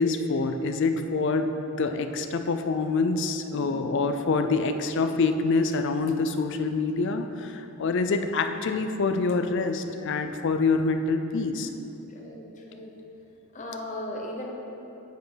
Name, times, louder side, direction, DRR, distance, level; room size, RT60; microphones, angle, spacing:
voice 1, 0.0-11.7, left 3 dB, 55° left, 7 dB, 0.4 m, -26 dB
voice 2, 3.5-3.9 12.1-12.9 13.5-14.5, left 1 dB, 35° left, -1 dB, 0.8 m, -37 dB
8.2 x 4.5 x 5.0 m, 3.0 s
head